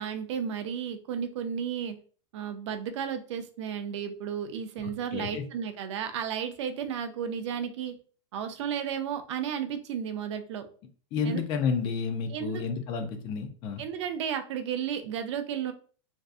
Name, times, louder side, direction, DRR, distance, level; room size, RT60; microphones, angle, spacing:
voice 1, 0.0-2.0 2.3-7.9 8.3-10.6 11.2-11.4 12.3-12.6 13.8-15.7, right 8 dB, 65° right, 8 dB, 0.5 m, -33 dB
voice 2, 4.8-5.4 11.1-13.8, left 5 dB, 30° left, 6 dB, 0.4 m, -31 dB
2.6 x 2.3 x 2.4 m, 0.41 s
supercardioid pair, 155°, 16 cm